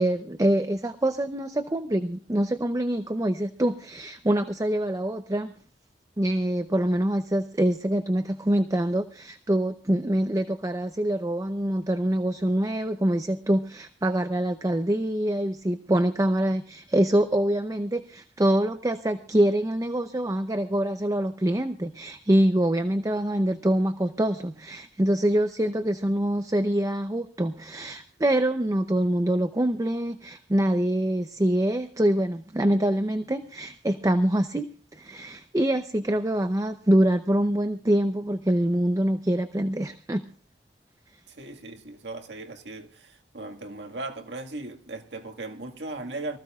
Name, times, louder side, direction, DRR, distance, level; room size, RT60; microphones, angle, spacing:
voice 1, 0.0-5.5 6.2-34.7 34.9-40.3, right 1 dB, 20° right, 0.6 m, -25 dB
voice 2, 41.3-46.4, right 2 dB, 80° right, 1.9 m, -38 dB
24.0 x 15.0 x 2.4 m
head